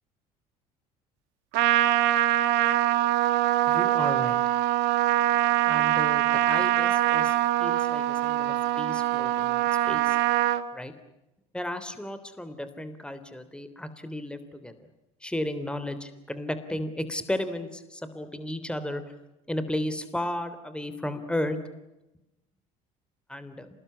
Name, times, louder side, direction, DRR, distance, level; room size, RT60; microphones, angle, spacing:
Trumpet, 1.5-10.6, right 15 dB, 75° right, 1.8 m, -23 dB
voice 1, 3.7-4.4 5.7-10.2 10.7-10.9 11.5-14.9 15.2-19.0 19.5-21.6 23.3-23.7, left 1 dB, 5° left, 11 dB, 3.3 m, -34 dB
28.0 x 20.0 x 9.8 m, 0.96 s
hypercardioid pair, 75°, 18 cm